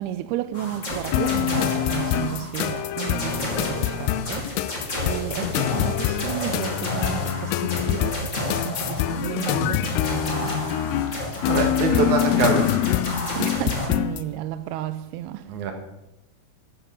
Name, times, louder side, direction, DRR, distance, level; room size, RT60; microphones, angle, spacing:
voice 1, 0.0-10.8 13.4-15.5, right 13 dB, 85° right, 2.3 m, -33 dB
sound 1, 0.5-13.9, left 2 dB, 25° left, 2.1 m, -31 dB
sound 2, 1.1-14.3, left 13 dB, 80° left, 2.4 m, -25 dB
voice 2, 11.5-12.7 15.5-15.7, right 5 dB, 55° right, 2.6 m, -23 dB
13.5 x 8.2 x 6.4 m
omnidirectional pair, 5.0 m